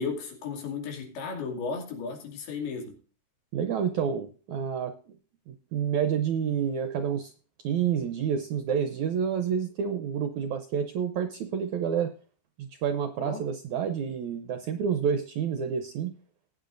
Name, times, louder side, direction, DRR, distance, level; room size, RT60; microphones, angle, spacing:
voice 1, 0.0-3.0 13.2-13.4, left 5 dB, 85° left, 4.6 m, -34 dB
voice 2, 3.5-4.9 5.5-7.3 7.6-12.1 12.6-16.1, right 7 dB, 75° right, 1.7 m, -29 dB
19.5 x 9.2 x 2.6 m
omnidirectional pair, 4.4 m